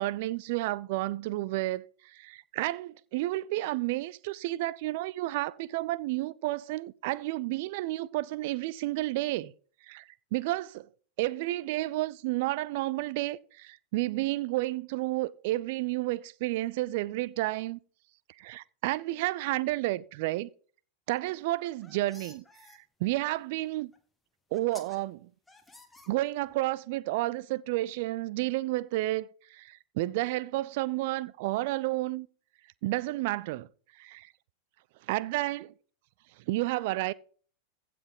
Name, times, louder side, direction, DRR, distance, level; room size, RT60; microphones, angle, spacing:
voice 1, 0.0-9.5 9.8-10.9 11.2-17.8 18.4-20.5 21.1-22.4 23.0-23.9 24.5-25.3 26.1-32.3 32.8-33.7 34.0-34.3 35.1-35.7 36.5-37.1, right 18 dB, 50° right, 0.4 m, -31 dB
sound 1, 21.5-22.8 23.9-24.0 24.5-25.0 25.5-26.5, left 2 dB, 5° left, 1.5 m, -53 dB
15.5 x 5.9 x 3.7 m
figure-of-eight pair, 90°, 0 cm